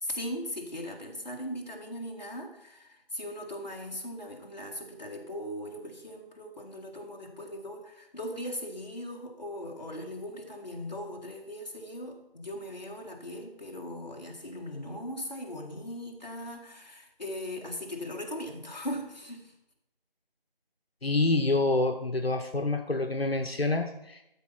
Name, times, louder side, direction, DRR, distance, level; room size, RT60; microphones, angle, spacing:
voice 1, 0.0-19.5, left 1 dB, 45° left, 0 dB, 1.7 m, -39 dB
voice 2, 21.0-24.2, left 2 dB, 80° left, 4 dB, 1.0 m, -27 dB
12.5 x 4.3 x 5.7 m, 0.85 s
figure-of-eight pair, 170°, 30 cm